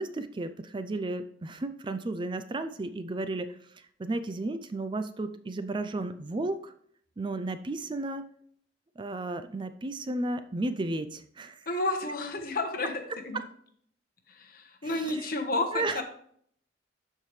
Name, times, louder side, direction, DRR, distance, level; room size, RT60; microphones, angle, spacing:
voice 1, 0.0-6.7 7.2-8.2 9.0-11.7 13.3-13.4 14.8-15.3 15.7-16.0, right 2 dB, 25° right, 10 dB, 0.4 m, -33 dB
voice 2, 11.7-12.9 13.2-13.4 14.3-16.0, left 2 dB, 55° left, 4 dB, 1.3 m, -31 dB
12.5 x 4.6 x 3.2 m, 0.63 s
head